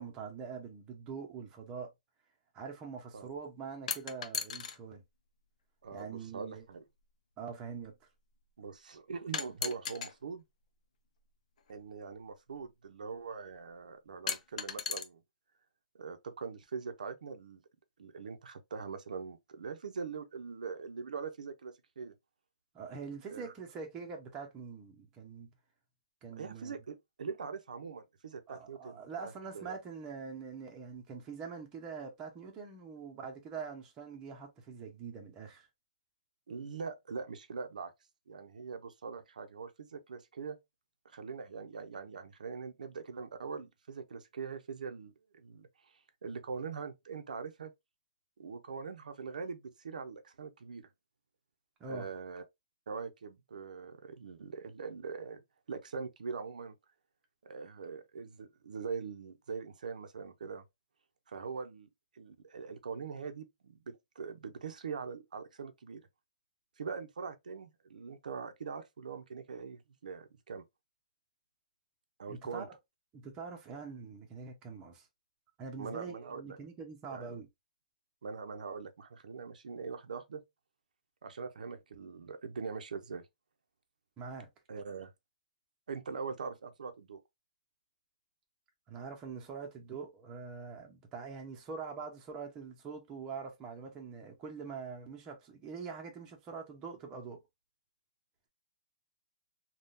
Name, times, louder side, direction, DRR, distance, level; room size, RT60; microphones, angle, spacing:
voice 1, 0.0-1.9 2.5-5.0 5.9-6.6 7.4-7.9 22.7-25.5 26.2-26.7 28.5-35.7 51.8-52.1 72.3-72.7 73.1-75.1 75.6-77.5 84.2-84.5 88.9-97.4, right 5 dB, 20° right, 0.8 m, -44 dB
sound 1, 3.9-4.8 6.0-6.1 9.3-10.1 11.6-11.7 14.3-15.0, left 7 dB, 60° left, 0.6 m, -36 dB
voice 2, 5.8-6.8 8.6-10.4 11.7-15.2 15.9-17.6 18.0-22.1 23.3-23.5 26.4-29.7 36.5-37.9 38.3-40.6 41.0-47.7 48.4-50.9 51.8-52.4 52.9-55.4 55.7-56.7 57.4-60.6 61.3-61.9 62.1-66.0 66.8-70.6 72.2-72.7 75.8-76.6 77.1-77.4 78.2-80.4 81.2-83.3 84.7-85.1 85.9-87.2, right 5 dB, 85° right, 0.7 m, -42 dB
3.6 x 2.3 x 2.6 m
hypercardioid pair, 160°, 4 cm